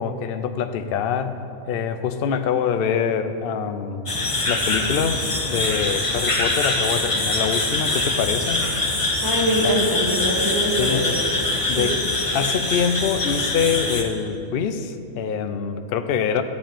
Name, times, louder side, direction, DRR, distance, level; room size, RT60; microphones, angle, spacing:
voice 1, 0.0-1.3 1.7-4.1 4.5-8.7 9.6-9.8 10.8-11.0 11.7-12.0 12.3-16.4, left 7 dB, 55° left, 9 dB, 0.6 m, -25 dB
sound 1, 4.1-14.0, left 2 dB, 25° left, 0.9 m, -24 dB
voice 2, 9.2-11.0 11.7-11.9, equal, 15° right, -6 dB, 2.4 m, -23 dB
14.0 x 4.7 x 9.0 m, 2.7 s
omnidirectional pair, 1.5 m